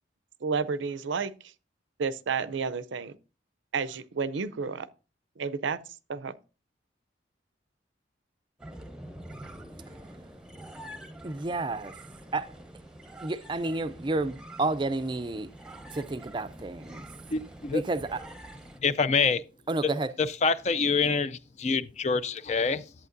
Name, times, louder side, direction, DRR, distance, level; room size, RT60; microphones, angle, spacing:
voice 1, 0.4-1.3 2.0-3.1 3.7-4.9 5.4-5.8 6.1-6.3, right 5 dB, 80° right, 0.5 m, -31 dB
sound 1, 8.6-18.8, right 1 dB, 5° right, 0.8 m, -46 dB
voice 2, 11.2-12.0 12.3-12.5 13.2-15.5 15.9-17.0 17.7-18.2 19.7-20.1, right 2 dB, 25° right, 0.4 m, -30 dB
voice 3, 17.3-17.8 18.8-19.4 20.2-22.9, left 5 dB, 35° left, 0.3 m, -26 dB
11.0 x 8.4 x 2.6 m
head